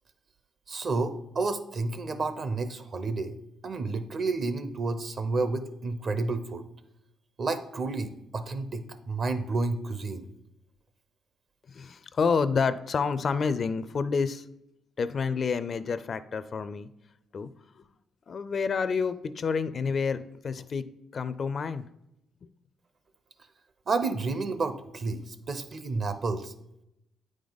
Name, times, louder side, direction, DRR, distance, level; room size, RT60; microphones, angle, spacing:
voice 1, 0.7-3.3 3.6-6.6 7.4-10.3 23.9-26.5, right 3 dB, 45° right, 10 dB, 0.7 m, -30 dB
voice 2, 11.7-14.4 15.0-16.9 17.3-17.5 17.8-17.9 18.3-21.9, left 5 dB, 45° left, 14 dB, 0.4 m, -29 dB
8.8 x 5.0 x 4.0 m, 0.84 s
cardioid pair, 90°, 0 cm